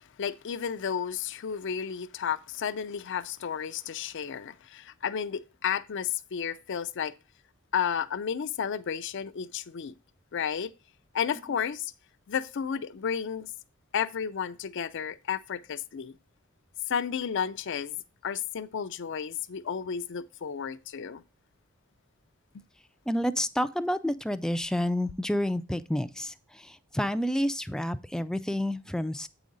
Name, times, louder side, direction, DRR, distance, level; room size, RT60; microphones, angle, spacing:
voice 1, 0.2-7.1 7.7-9.9 10.3-10.7 11.1-11.9 12.3-13.5 13.9-16.1 16.9-18.0 18.2-21.2, left 7 dB, 60° left, 0.5 m, -32 dB
voice 2, 23.1-26.3 26.9-29.3, equal, 5° left, 0.3 m, -29 dB
8.4 x 5.0 x 3.9 m
head